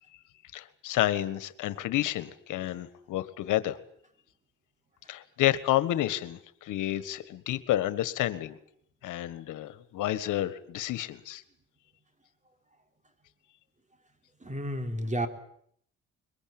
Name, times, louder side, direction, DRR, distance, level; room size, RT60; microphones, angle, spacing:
voice 1, 0.5-3.8 5.1-8.6 9.0-11.4, left 14 dB, 85° left, 14 dB, 1.6 m, -30 dB
voice 2, 14.4-15.3, equal, 25° right, 7 dB, 3.6 m, -31 dB
23.0 x 20.5 x 8.9 m, 0.67 s
cardioid pair, 90°, 30 cm